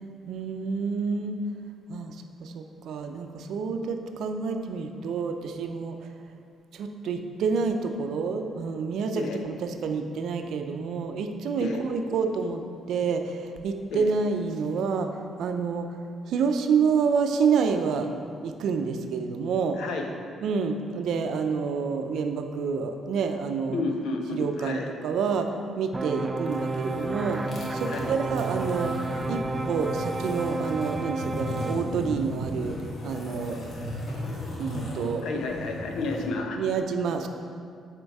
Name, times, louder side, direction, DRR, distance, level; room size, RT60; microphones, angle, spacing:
voice 1, 0.3-1.4 1.9-6.0 6.7-15.9 16.3-18.1 18.4-19.8 20.4-23.8 24.3-25.5 25.8-27.4 27.7-28.9 29.3-32.8 33.0-33.6 34.6-35.2 36.5-37.3, right 5 dB, 75° right, 6 dB, 0.6 m, -28 dB
voice 2, 19.8-20.1 23.7-24.9 27.9-28.2 35.2-36.6, left 3 dB, 80° left, 3 dB, 0.8 m, -31 dB
sound 1, 25.9-31.8, right 2 dB, 20° right, 0.4 m, -31 dB
sound 2, 26.4-36.3, left 1 dB, 60° left, 1.7 m, -36 dB
7.8 x 4.4 x 4.7 m, 2.3 s
cardioid pair, 90°, 0 cm